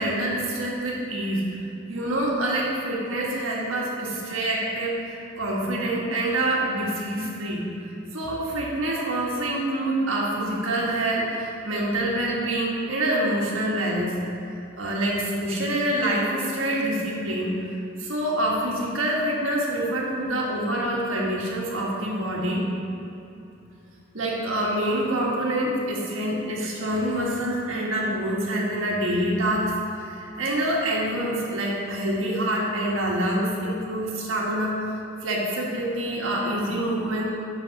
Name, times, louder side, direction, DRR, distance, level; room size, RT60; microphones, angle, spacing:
voice 1, 0.0-1.4 1.9-7.6 8.1-14.1 14.8-17.6 18.0-22.7 24.1-34.8 35.2-37.3, right 1 dB, 85° right, -3 dB, 1.5 m, -26 dB
6.6 x 5.7 x 5.9 m, 2.8 s
head